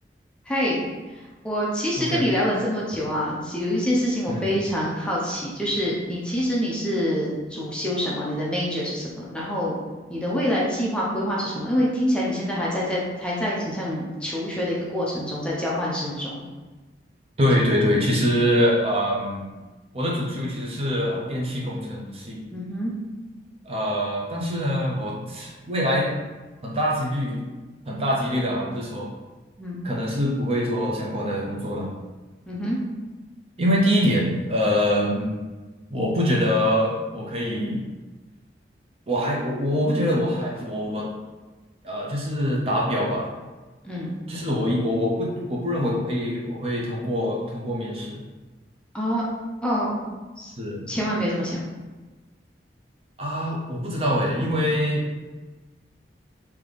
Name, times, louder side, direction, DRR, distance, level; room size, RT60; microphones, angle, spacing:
voice 1, 0.5-0.8 1.1-9.8 10.1-16.4 22.5-22.9 29.6-29.8 32.5-32.8 43.8-44.1 48.9-49.3 49.6-50.0 50.4-50.5 50.9-51.6, equal, 5° left, -5 dB, 0.6 m, -26 dB
voice 2, 17.4-19.5 19.9-22.4 23.6-26.1 26.6-27.4 27.9-29.1 29.8-31.9 33.6-35.3 35.9-37.8 39.1-41.1 41.8-43.3 44.3-48.2 50.6-50.8 53.2-55.1, equal, 35° right, -3 dB, 0.7 m, -24 dB
3.9 x 2.9 x 3.3 m, 1.2 s
head